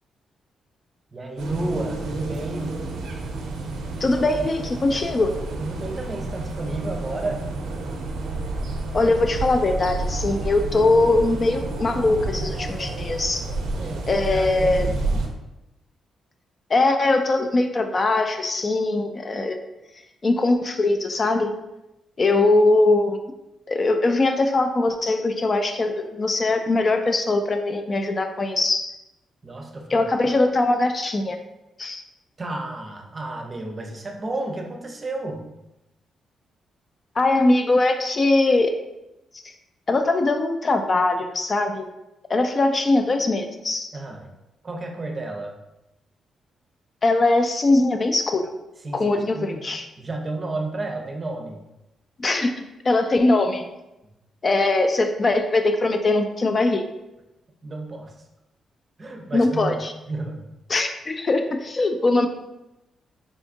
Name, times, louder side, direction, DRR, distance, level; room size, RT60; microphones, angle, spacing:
voice 1, 1.1-2.8 5.6-7.5 13.7-15.3 29.4-30.1 32.4-35.5 43.9-44.3 44.6-45.5 48.8-49.7 50.0-51.6 57.6-58.2 59.0-59.8 60.1-60.5, right 2 dB, 35° right, 2 dB, 0.5 m, -32 dB
sound 1, 1.4-15.3, right 2 dB, 90° right, 0.5 m, -30 dB
voice 2, 4.0-5.3 8.9-13.4 14.1-14.9 16.7-19.6 20.2-21.5 22.2-23.2 23.7-28.9 29.9-31.4 31.8-32.0 37.2-38.7 39.4-39.5 39.9-41.8 42.3-43.9 47.0-48.4 48.9-49.8 52.2-53.6 54.4-56.8 59.3-59.9 60.7-62.3, left 2 dB, 40° left, 6 dB, 0.3 m, -21 dB
3.7 x 2.4 x 2.5 m, 0.94 s
cardioid pair, 75°, 0 cm